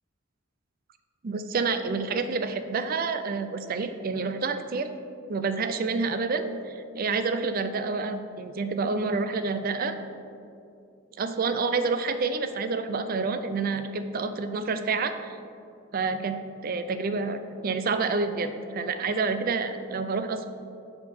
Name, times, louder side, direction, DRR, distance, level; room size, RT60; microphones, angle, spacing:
voice 1, 1.2-4.9 5.3-6.5 6.9-10.0 11.2-15.4 15.9-20.5, right 4 dB, 45° right, 10 dB, 0.4 m, -28 dB
6.6 x 4.6 x 5.5 m, 2.5 s
head